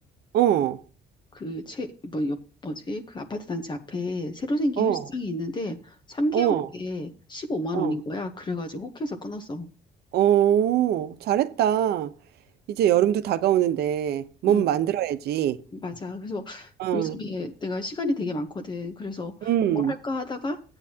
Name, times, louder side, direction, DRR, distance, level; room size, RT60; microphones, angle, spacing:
voice 1, 0.3-0.8 4.8-5.0 6.3-6.7 7.7-8.0 10.1-12.1 12.7-15.6 16.8-17.2 19.4-19.9, right 11 dB, 70° right, 0.9 m, -23 dB
voice 2, 1.3-2.4 2.6-9.7 14.5-14.6 15.7-20.6, left 1 dB, 25° left, 1.0 m, -31 dB
13.0 x 8.9 x 2.9 m
cardioid pair, 110°, 17 cm